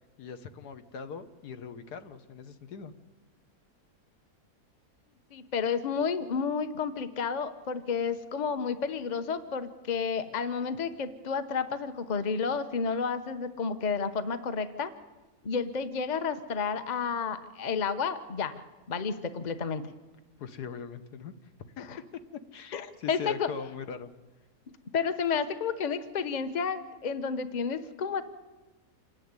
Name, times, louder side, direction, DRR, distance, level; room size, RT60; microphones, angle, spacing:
voice 1, 0.2-2.9 20.4-21.3 21.6-21.9 22.5-24.1, left 6 dB, 75° left, 10 dB, 1.6 m, -41 dB
voice 2, 5.3-14.9 15.4-18.5 18.9-19.8 21.8-22.0 22.7-23.5 24.9-28.2, left 6 dB, 30° left, 10 dB, 1.0 m, -31 dB
27.0 x 10.5 x 9.6 m, 1.2 s
omnidirectional pair, 1.7 m